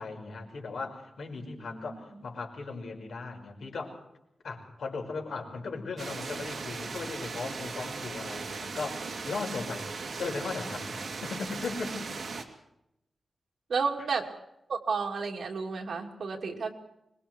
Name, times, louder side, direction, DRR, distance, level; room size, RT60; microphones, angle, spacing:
voice 1, 0.0-4.0 4.4-9.9 10.2-12.1, left 4 dB, 85° left, 2 dB, 5.6 m, -37 dB
voice 2, 1.6-2.2 9.0-9.1 13.7-14.3 14.7-16.7, right 5 dB, 70° right, 2 dB, 3.1 m, -32 dB
sound 1, 6.0-12.4, right 4 dB, 55° right, 2.8 m, -38 dB
25.5 x 22.5 x 4.7 m, 0.83 s
wide cardioid pair, 155°, 0 cm